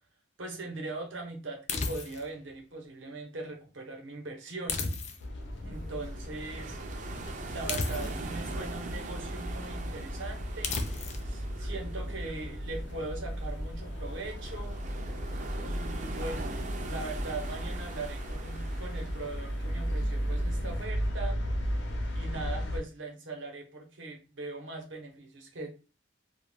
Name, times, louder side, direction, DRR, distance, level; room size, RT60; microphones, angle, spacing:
voice 1, 0.4-4.8 5.6-6.8 7.5-10.8 11.2-14.8 15.6-21.4 22.1-25.7, right 2 dB, 80° right, 2 dB, 0.8 m, -40 dB
sound 1, 1.7-2.4 4.7-5.4 7.7-8.4 10.6-11.3, left 3 dB, 35° left, 0.3 m, -33 dB
sound 2, 5.2-22.8, equal, 70° left, 0.6 m, -35 dB
sound 3, 5.7-20.8, right 3 dB, 40° right, 0.3 m, -43 dB
2.3 x 2.1 x 3.2 m, 0.33 s
head